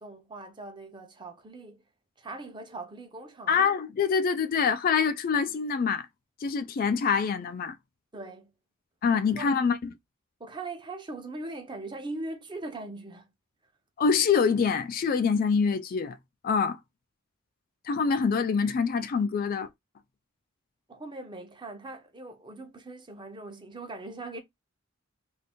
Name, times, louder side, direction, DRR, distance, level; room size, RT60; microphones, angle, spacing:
voice 1, 0.0-1.8 2.2-3.6 8.1-8.5 9.4-9.5 10.4-13.3 20.9-24.4, right 2 dB, 25° right, 0.7 m, -40 dB
voice 2, 3.5-6.1 6.4-7.8 9.0-9.9 14.0-16.2 16.4-16.8 17.8-19.7, left 5 dB, 45° left, 0.3 m, -25 dB
2.6 x 2.5 x 3.5 m
head